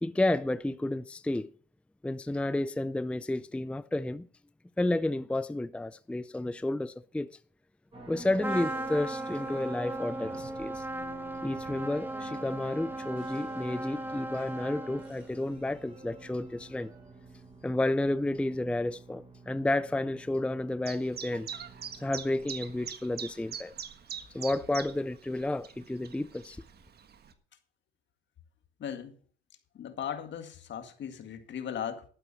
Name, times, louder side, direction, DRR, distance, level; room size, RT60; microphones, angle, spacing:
voice 1, 0.0-1.5 2.0-4.3 4.8-7.3 8.1-10.8 11.4-16.9 17.6-21.5 22.0-23.7 24.3-26.6, left 2 dB, 5° left, 0.5 m, -31 dB
sound 1, 7.9-22.9, right 2 dB, 25° right, 7.4 m, -49 dB
Trumpet, 8.4-15.3, right 1 dB, 10° right, 1.2 m, -37 dB
Chirp tweet, 20.8-27.3, right 7 dB, 55° right, 1.5 m, -43 dB
voice 2, 28.8-29.2 29.7-32.0, left 8 dB, 65° left, 2.0 m, -37 dB
12.0 x 9.0 x 5.9 m
cardioid pair, 90°, 20 cm